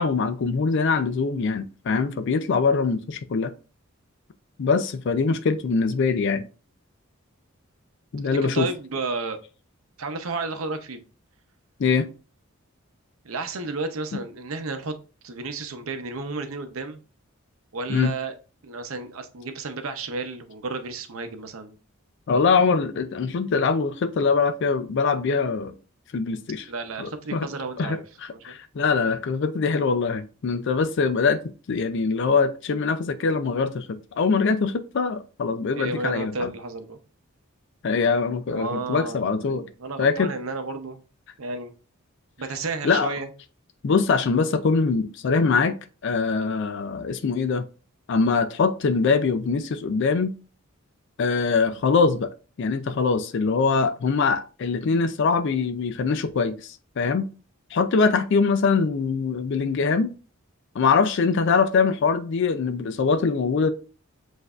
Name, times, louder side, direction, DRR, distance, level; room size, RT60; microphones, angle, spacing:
voice 1, 0.0-3.5 4.6-6.5 8.1-8.7 11.8-12.1 14.1-14.2 17.9-18.2 22.3-25.7 26.1-26.7 27.0-27.5 27.8-31.4 31.7-36.5 37.8-39.7 40.0-40.3 42.5-42.6 42.8-43.1 43.8-45.7 46.0-47.6 48.1-50.3 51.2-52.3 52.6-57.3 57.7-60.1 60.8-63.7, left 4 dB, 60° left, 0.4 m, -23 dB
voice 2, 8.3-9.4 10.0-11.0 13.2-14.9 15.2-17.0 17.7-18.3 18.6-21.7 26.7-28.0 28.3-28.6 35.7-37.0 38.5-41.0 41.4-41.7 42.4-43.3, right 3 dB, 80° right, 0.7 m, -32 dB
7.7 x 2.6 x 2.4 m
head